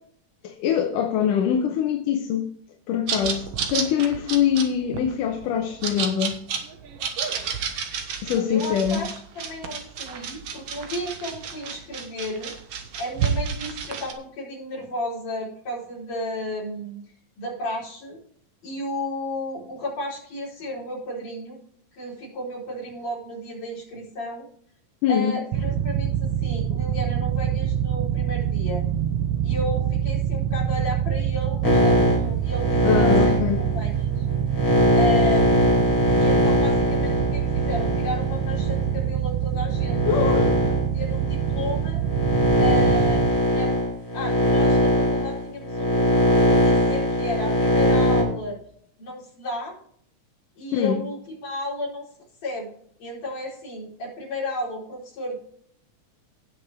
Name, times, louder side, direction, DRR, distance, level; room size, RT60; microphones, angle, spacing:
voice 1, 0.4-2.5 2.9-6.4 8.2-9.0 25.0-25.4 32.8-33.6 40.1-40.6 50.7-51.0, left 9 dB, 85° left, 4 dB, 2.4 m, -23 dB
sound 1, 3.1-14.1, right 6 dB, 55° right, 2.0 m, -31 dB
voice 2, 8.3-12.5 13.0-17.0 17.4-18.2 18.6-21.6 21.9-24.5 25.1-28.8 29.4-34.3 34.9-35.8 36.2-40.3 40.9-42.0 42.6-43.7 44.1-48.6 49.0-49.7 50.6-52.1 52.4-52.7 53.0-55.4, left 1 dB, 55° left, -4 dB, 5.9 m, -33 dB
sound 2, 25.5-43.3, right 9 dB, 70° right, 1.7 m, -25 dB
sound 3, 31.6-39.0 39.6-48.2, left 1 dB, 25° left, 4.3 m, -21 dB
17.5 x 6.6 x 3.5 m, 0.63 s
omnidirectional pair, 3.7 m